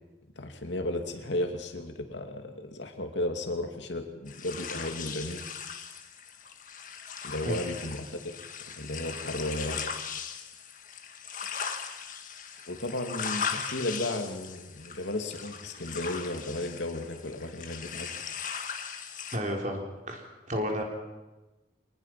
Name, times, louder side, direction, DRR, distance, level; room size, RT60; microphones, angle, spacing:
voice 1, 0.4-5.5 7.2-8.2 8.8-9.9 12.7-18.1, left 1 dB, 90° left, 5 dB, 2.6 m, -34 dB
sound 1, 4.3-19.4, left 6 dB, 45° left, 1.7 m, -39 dB
voice 2, 19.3-19.8 20.1-20.2 20.5-20.8, equal, 40° right, 1 dB, 3.8 m, -30 dB
25.5 x 19.0 x 5.9 m, 1.1 s
head